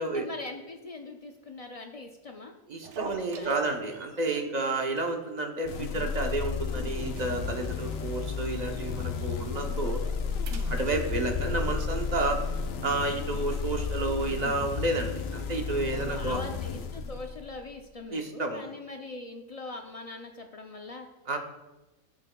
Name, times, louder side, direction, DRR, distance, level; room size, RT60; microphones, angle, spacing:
voice 1, 0.0-2.5 3.0-4.0 15.9-21.1, left 2 dB, 55° left, 4 dB, 0.4 m, -42 dB
voice 2, 2.7-10.0 10.7-12.4 12.8-16.4 18.1-18.7 21.3-21.4, right 2 dB, 40° right, 4 dB, 0.8 m, -31 dB
sound 1, 2.8-4.4 4.8-5.0 5.3-5.4 5.9-6.4 6.8-8.9 9.2-9.4 9.8-11.7, right 6 dB, 65° right, 0.9 m, -44 dB
sound 2, 5.6-17.6, left 5 dB, 75° left, 1.1 m, -33 dB
11.5 x 7.7 x 2.3 m, 1.1 s
omnidirectional pair, 1.4 m